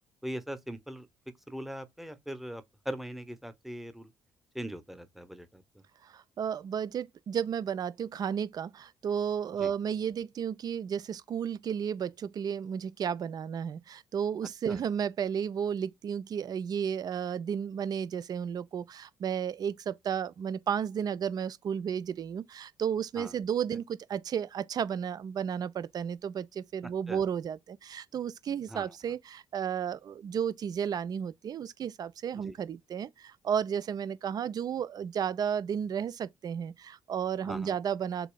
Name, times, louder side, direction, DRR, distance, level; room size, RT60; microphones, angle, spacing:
voice 1, 0.2-1.1 1.5-4.1 4.5-5.8 9.6-9.7 14.7-14.8 23.2-23.3 27.1-27.2 28.7-29.0 32.4-32.6 37.4-37.7, equal, ahead, 0.8 m, -40 dB
voice 2, 6.0-38.3, right 8 dB, 40° right, 0.4 m, -33 dB
6.7 x 2.7 x 2.3 m
figure-of-eight pair, 45°, 10 cm